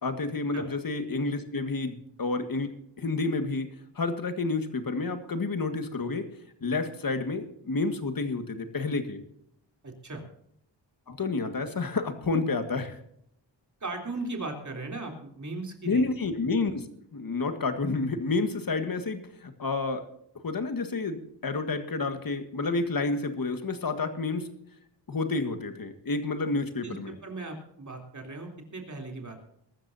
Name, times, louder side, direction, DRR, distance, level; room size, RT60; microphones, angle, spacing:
voice 1, 0.0-3.7 4.0-6.3 6.6-9.2 11.1-13.0 15.8-16.8 17.1-20.1 20.4-24.5 25.1-27.1, left 3 dB, 50° left, 8 dB, 1.9 m, -30 dB
voice 2, 9.8-10.2 13.8-16.1 26.8-29.4, right 2 dB, 40° right, 2 dB, 3.5 m, -38 dB
22.5 x 13.0 x 2.8 m, 0.72 s
wide cardioid pair, 110°, 45 cm